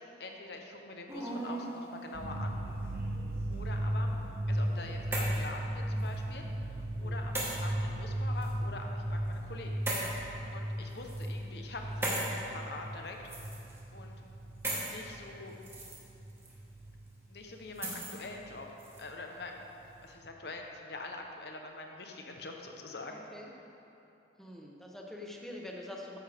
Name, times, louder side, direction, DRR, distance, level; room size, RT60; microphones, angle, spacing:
voice 1, 0.2-2.6 3.5-4.1 4.5-6.4 6.7-9.8 10.5-13.4 13.9-14.2 14.8-15.5 17.3-18.7 19.0-19.6 20.0-23.2, left 2 dB, 60° left, 2 dB, 1.0 m, -44 dB
sound 1, 1.1-1.7 2.6-3.3 4.6-5.5 6.0-6.1 7.3-7.6 8.4-8.5 9.8-10.1 10.9-11.3 12.0-12.3 13.2-13.8 14.6-14.9 15.5-16.0 16.4-16.5 17.7-18.2 18.8-19.0, right 2 dB, 15° right, 1.6 m, -37 dB
sound 2, 2.1-17.2 17.5-18.6 19.0-19.1 19.4-20.1, right 1 dB, 45° right, 0.8 m, -36 dB
voice 2, 23.1-23.5 24.4-26.2, left 1 dB, ahead, -1 dB, 1.0 m, -45 dB
13.5 x 9.9 x 3.6 m, 3.0 s
head